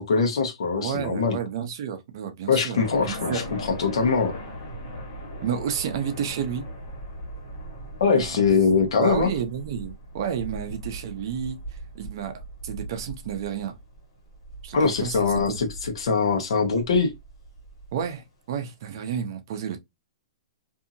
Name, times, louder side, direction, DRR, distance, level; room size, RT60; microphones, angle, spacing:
voice 1, 0.0-1.4 2.5-4.4 8.0-9.3 14.7-17.1, left 5 dB, 70° left, 0.9 m, -22 dB
voice 2, 0.8-2.8 3.0-3.4 5.4-6.6 8.1-8.4 9.0-11.6 11.9-12.3 12.6-13.7 14.6-15.6 17.9-19.8, right 8 dB, 45° right, 0.6 m, -31 dB
sound 1, 2.7-17.9, right 1 dB, 55° left, 1.4 m, -39 dB
2.7 x 2.6 x 2.7 m
hypercardioid pair, 175°, 3 cm